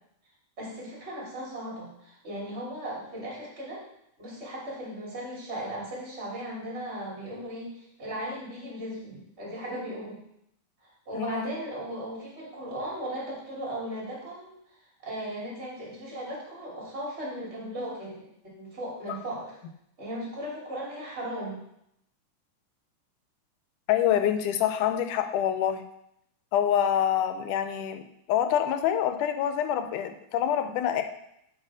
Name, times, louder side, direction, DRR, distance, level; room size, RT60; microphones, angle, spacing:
voice 1, 0.6-3.8 4.2-10.2 11.1-14.5 15.0-19.5 20.0-21.6, right 1 dB, 20° right, -5 dB, 3.0 m, -37 dB
voice 2, 11.2-11.5 23.9-25.8 26.5-28.0 28.3-31.0, left 10 dB, 85° left, 8 dB, 2.1 m, -26 dB
7.5 x 4.8 x 6.1 m, 0.78 s
omnidirectional pair, 3.5 m